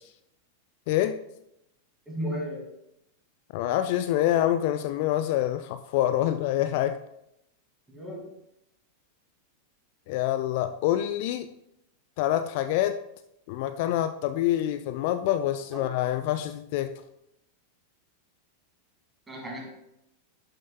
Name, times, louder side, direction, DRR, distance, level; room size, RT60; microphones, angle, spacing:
voice 1, 0.9-1.2 3.5-7.0 10.1-11.5 12.2-13.0 13.5-17.0, left 12 dB, 50° left, 0.3 m, -26 dB
voice 2, 2.1-2.7 7.9-8.2 15.7-15.8 19.3-19.7, equal, 10° right, 2.4 m, -34 dB
11.5 x 6.5 x 2.3 m
figure-of-eight pair, 90°, 0 cm